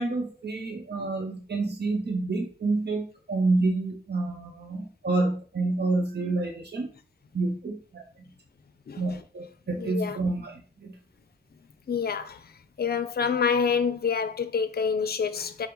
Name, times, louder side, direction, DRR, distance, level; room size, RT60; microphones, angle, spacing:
voice 1, 0.0-6.9 7.3-8.2 9.0-11.0, right 3 dB, 65° right, 0.7 m, -28 dB
voice 2, 9.8-10.2 11.9-12.5 12.8-15.7, left 6 dB, 60° left, 0.4 m, -27 dB
5.1 x 2.0 x 4.5 m
wide cardioid pair, 65°, 18 cm